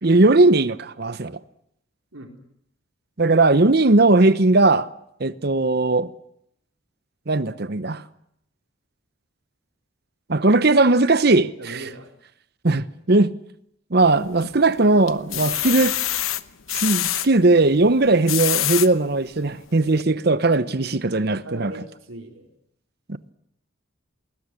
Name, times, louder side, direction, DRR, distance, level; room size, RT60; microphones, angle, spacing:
voice 1, 0.0-1.4 3.2-4.9 5.2-6.1 7.3-8.0 10.3-11.8 12.6-13.3 13.9-16.0 16.7-21.7, right 2 dB, 50° right, 0.9 m, -18 dB
voice 2, 11.6-12.1 15.3-15.4 21.4-22.5, right 1 dB, 85° right, 4.5 m, -38 dB
sound 1, 14.0-14.6 15.1-17.3 18.0-18.9 19.5-19.6 19.9-20.0, left 13 dB, 90° left, 1.0 m, -25 dB
20.5 x 19.5 x 9.8 m
head